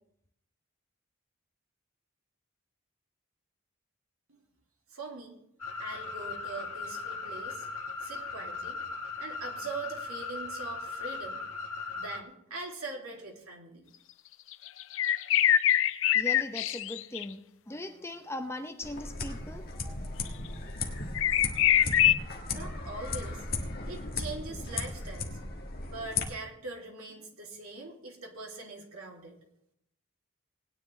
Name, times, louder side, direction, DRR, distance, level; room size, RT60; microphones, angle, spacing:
voice 1, 4.9-5.4 5.8-7.7 8.0-8.8 9.2-11.4 11.9-13.9 22.5-23.5 23.9-25.3 25.8-29.4, right 3 dB, 85° right, 0 dB, 2.6 m, -42 dB
sound 1, 5.6-12.2, left 4 dB, 85° left, 1.5 m, -38 dB
sound 2, 14.5-17.2 20.3-20.4 21.1-22.1, left 11 dB, 65° left, 0.5 m, -24 dB
voice 2, 16.1-19.6, left 1 dB, 10° left, 6 dB, 0.7 m, -39 dB
sound 3, 18.8-26.2, left 3 dB, 45° left, 1.5 m, -36 dB
19.0 x 10.0 x 3.2 m, 0.75 s
head